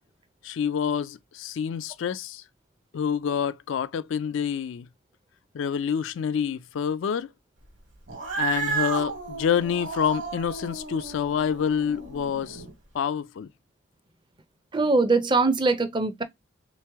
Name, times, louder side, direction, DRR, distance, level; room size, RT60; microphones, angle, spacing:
voice 1, 0.4-2.4 2.9-4.8 5.5-7.3 8.4-12.6 12.9-13.5, left 7 dB, 65° left, 0.3 m, -27 dB
Cat, 8.1-12.7, right 5 dB, 65° right, 1.3 m, -33 dB
voice 2, 14.7-16.2, right 3 dB, 20° right, 0.4 m, -22 dB
3.2 x 3.0 x 3.4 m
head